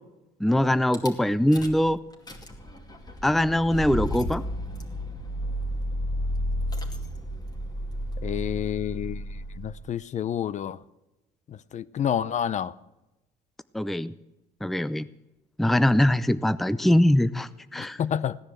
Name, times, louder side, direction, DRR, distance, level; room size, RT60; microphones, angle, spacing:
voice 1, 0.4-2.0 3.2-4.4 13.7-14.1 14.6-15.1 15.6-18.0, left 1 dB, ahead, 0.5 m, -22 dB
Rattle / Car / Engine starting, 0.9-1.1 1.5-1.9 2.1-9.9, equal, 25° left, 2.5 m, -32 dB
voice 2, 8.2-10.8 11.5-12.7 17.8-18.4, left 9 dB, 45° left, 0.6 m, -29 dB
17.0 x 10.0 x 7.8 m
cardioid pair, 110°, 17 cm